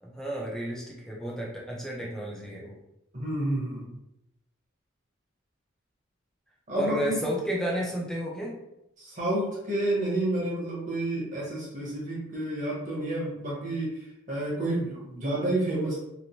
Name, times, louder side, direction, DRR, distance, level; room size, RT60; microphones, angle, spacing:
voice 1, 0.0-2.8 6.7-8.6, equal, 5° left, -3 dB, 0.4 m, -31 dB
voice 2, 3.1-3.9 6.7-7.2 9.0-16.0, right 1 dB, 40° right, -5 dB, 0.9 m, -30 dB
3.0 x 2.0 x 2.7 m, 0.85 s
head